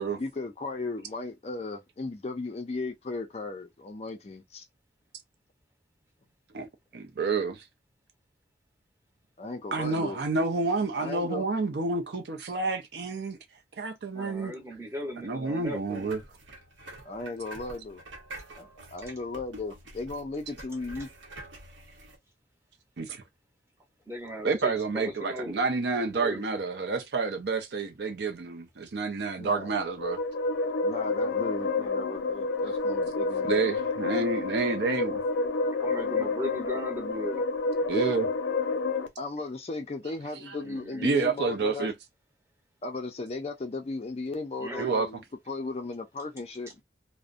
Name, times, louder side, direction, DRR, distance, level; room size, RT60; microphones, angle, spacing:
voice 1, 0.2-4.6 9.4-10.2 11.0-11.5 17.0-18.0 18.5-21.1 29.4-29.7 30.8-33.6 39.2-41.9 42.8-46.8, left 3 dB, 35° left, 0.4 m, -36 dB
voice 2, 6.9-7.6 9.7-13.4 13.8-14.5 15.2-16.2 23.0-23.2 24.4-30.2 33.4-35.2 37.9-38.3 41.0-41.9 44.8-45.1, right 4 dB, 60° right, 0.5 m, -29 dB
voice 3, 14.1-16.1 24.1-25.6 25.9-26.5 35.8-37.4 40.6-41.1 41.8-41.9 44.6-44.9, equal, 15° right, 0.8 m, -37 dB
sound 1, 15.7-22.2, right 1 dB, 85° right, 0.8 m, -47 dB
sound 2, 29.7-39.1, left 3 dB, 90° left, 0.5 m, -29 dB
2.4 x 2.1 x 2.4 m
head